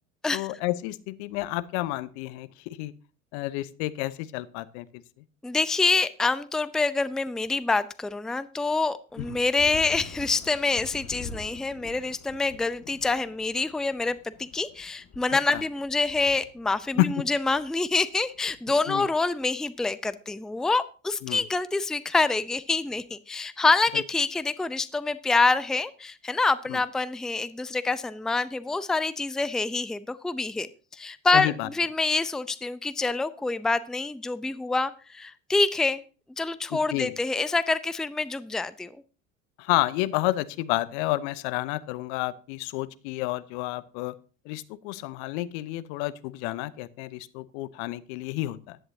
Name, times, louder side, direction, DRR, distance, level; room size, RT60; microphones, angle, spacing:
voice 1, 0.3-2.9 3.3-4.9 9.2-9.3 15.5-15.6 17.0-17.1 18.9-19.1 21.2-21.4 23.9-24.0 26.7-26.8 31.3-31.7 36.7-37.1 39.6-44.2 44.4-48.8, left 17 dB, 60° left, 17 dB, 0.9 m, -30 dB
voice 2, 5.4-36.0 36.4-38.9, left 3 dB, ahead, 16 dB, 0.6 m, -26 dB
sound 1, 9.2-19.1, left 4 dB, 40° left, 1.9 m, -45 dB
15.5 x 11.0 x 2.8 m, 0.36 s
hypercardioid pair, 75°, 39 cm